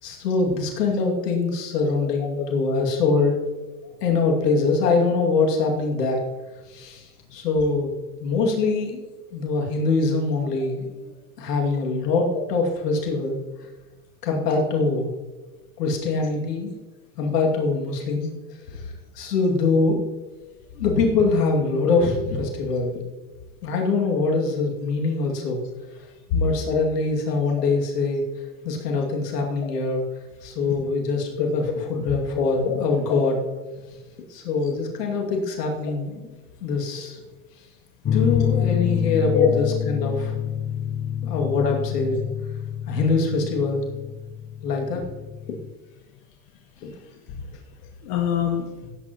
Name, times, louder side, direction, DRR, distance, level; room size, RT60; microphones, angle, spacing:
voice 1, 0.0-3.4 4.0-6.2 6.7-7.9 8.2-9.1 9.3-11.1 11.4-13.4 14.2-15.1 15.8-16.7 17.2-18.4 18.7-20.0 20.7-22.9 23.6-25.6 26.3-28.3 28.6-30.0 30.4-31.6 31.9-33.4 34.3-36.3 36.6-37.2 38.1-40.3 41.2-42.2 42.9-43.8 44.6-45.0 46.8-46.9, left 3 dB, 85° left, 0 dB, 2.6 m, -23 dB
voice 2, 2.0-2.5 2.8-2.9 22.0-22.1 22.7-22.8 26.3-26.4 30.7-30.9 31.6-31.7 32.1-33.2 33.7-33.8 34.6-34.7 35.2-35.3 38.3-38.7 39.3-39.6 44.9-45.0 47.3-47.5 47.8-48.9, left 8 dB, 65° left, 1 dB, 1.9 m, -27 dB
sound 1, 38.0-45.7, left 9 dB, 25° left, 0.7 m, -27 dB
17.0 x 9.1 x 3.0 m, 1.2 s
hypercardioid pair, 95°, 46 cm